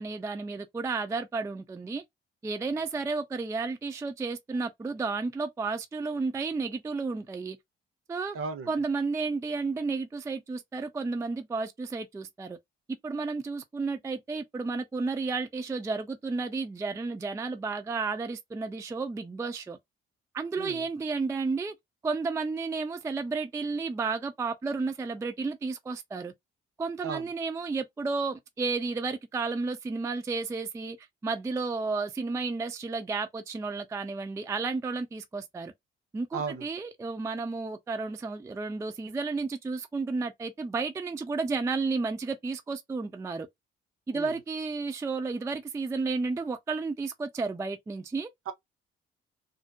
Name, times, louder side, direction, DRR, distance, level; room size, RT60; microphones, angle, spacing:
voice 1, 0.0-2.0 2.4-7.6 8.1-8.4 8.7-12.6 13.0-19.8 20.3-21.7 22.0-26.3 26.8-31.0 31.2-35.7 36.1-43.5 44.1-48.3, right 4 dB, 10° right, 0.3 m, -32 dB
voice 2, 8.3-8.7 20.6-20.9 27.0-27.3 36.3-36.7 44.1-44.4 48.5-48.6, right 5 dB, 45° right, 0.7 m, -35 dB
2.6 x 2.0 x 2.2 m
figure-of-eight pair, 40°, 30 cm